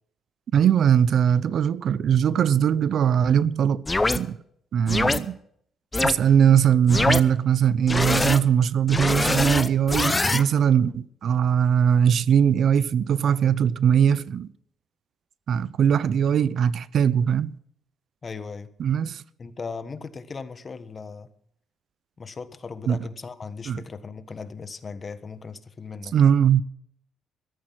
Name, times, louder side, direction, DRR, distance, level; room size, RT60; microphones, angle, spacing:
voice 1, 0.5-3.8 4.1-4.4 4.7-5.4 6.0-14.5 15.5-17.6 18.8-19.2 22.9-23.0 23.7-23.8 26.1-26.6, right 8 dB, 65° right, 0.6 m, -20 dB
sound 1, 3.9-4.2 4.9-5.2 5.9-6.1 6.9-7.2 7.9-8.4 8.9-10.4, left 2 dB, 20° left, 0.8 m, -23 dB
voice 2, 18.2-18.7 19.4-21.3 22.2-26.1, left 4 dB, 35° left, 1.3 m, -37 dB
14.0 x 13.0 x 6.0 m
cardioid pair, 90°, 0 cm